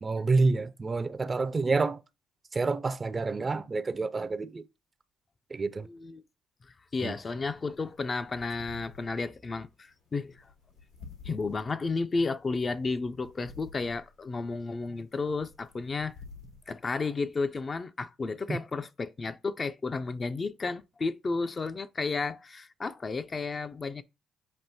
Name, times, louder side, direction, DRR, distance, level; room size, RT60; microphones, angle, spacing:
voice 1, 0.0-2.0 2.5-4.6 5.5-5.9 7.0-7.1 18.5-18.6, right 3 dB, 35° right, 0.4 m, -28 dB
voice 2, 5.8-6.2 6.9-10.5 11.2-16.1 16.7-24.0, left 4 dB, 40° left, 0.4 m, -32 dB
sound 1, 7.2-17.7, left 4 dB, 90° left, 1.5 m, -52 dB
7.0 x 2.6 x 2.7 m
hypercardioid pair, 50°, 0 cm